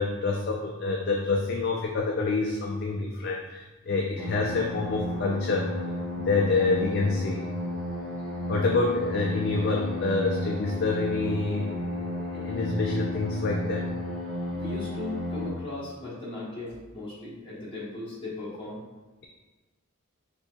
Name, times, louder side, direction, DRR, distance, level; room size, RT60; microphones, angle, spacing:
voice 1, 0.0-5.7 6.2-7.4 8.5-14.0, left 3 dB, 50° left, -1 dB, 0.3 m, -27 dB
sound 1, 4.2-15.5, left 1 dB, 5° left, 0.7 m, -33 dB
voice 2, 14.5-18.8, left 2 dB, 25° left, -9 dB, 1.1 m, -37 dB
4.2 x 2.8 x 2.3 m, 1.2 s
head